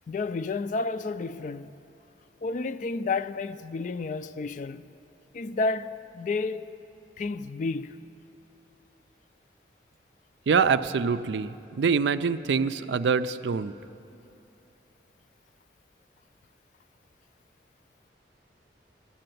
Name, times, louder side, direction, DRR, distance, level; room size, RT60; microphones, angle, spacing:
voice 1, 0.1-1.7 2.4-4.9 5.3-6.7 7.2-8.0, left 3 dB, 45° left, 0.3 m, -31 dB
voice 2, 10.5-13.7, right 5 dB, 80° right, 0.4 m, -25 dB
14.0 x 7.7 x 9.1 m
head